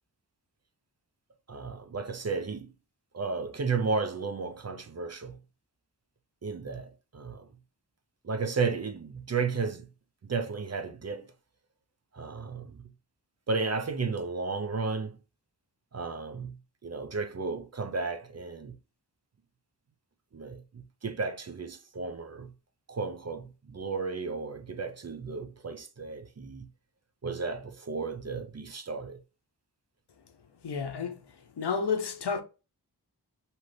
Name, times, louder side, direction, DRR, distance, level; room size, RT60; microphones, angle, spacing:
voice 1, 1.5-2.7 3.1-5.4 6.4-7.5 8.2-9.9 10.2-11.3 12.1-12.9 13.5-15.2 15.9-18.8 20.3-22.5 22.9-26.7 27.2-29.2, right 4 dB, 40° right, 0.5 m, -33 dB
voice 2, 30.6-31.2 31.5-32.4, left 5 dB, 70° left, 0.7 m, -30 dB
2.9 x 2.5 x 3.2 m
wide cardioid pair, 45°, 42 cm